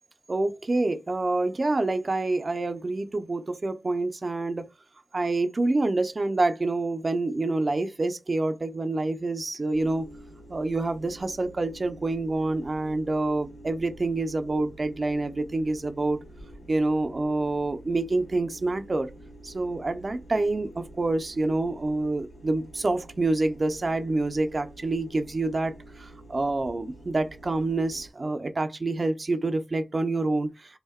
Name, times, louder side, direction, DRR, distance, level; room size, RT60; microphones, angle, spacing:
voice 1, 0.3-4.7 5.1-10.1 10.5-16.2 16.7-19.1 19.4-30.8, right 2 dB, 45° right, 0.4 m, -27 dB
sound 1, 9.7-28.1, right 1 dB, 85° left, 0.7 m, -48 dB
2.6 x 2.1 x 2.2 m
wide cardioid pair, 65°, 0 cm